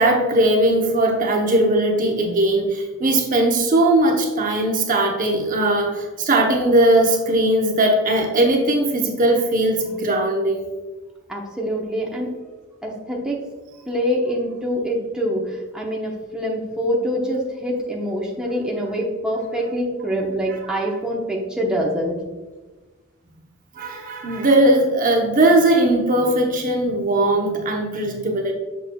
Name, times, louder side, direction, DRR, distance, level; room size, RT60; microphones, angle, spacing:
voice 1, 0.0-10.7 20.7-20.8 23.8-28.5, right 1 dB, 40° right, 2 dB, 0.8 m, -19 dB
voice 2, 11.3-12.3 12.8-13.4 13.9-22.2, equal, 5° right, -3 dB, 0.9 m, -25 dB
6.7 x 6.6 x 2.2 m, 1.2 s
head